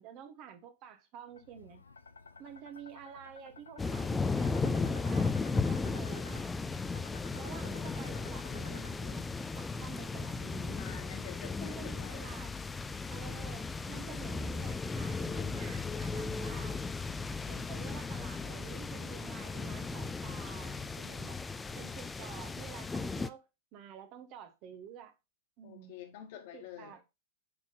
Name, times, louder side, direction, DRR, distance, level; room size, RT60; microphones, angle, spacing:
voice 1, 0.0-1.8 2.4-6.5 7.3-9.3 9.6-10.8 11.6-12.6 13.1-16.9 17.5-21.4 21.7-23.4 23.7-25.1 25.6-26.0 26.5-27.0, right 8 dB, 40° right, 1.0 m, -49 dB
sound 1, 1.3-9.1, left 4 dB, 75° left, 0.6 m, -55 dB
sound 2, 3.8-23.3, left 4 dB, 10° left, 0.4 m, -36 dB
voice 2, 10.8-12.3 25.6-27.0, left 11 dB, 50° left, 1.5 m, -48 dB
8.0 x 3.7 x 3.6 m
figure-of-eight pair, 95°, 0 cm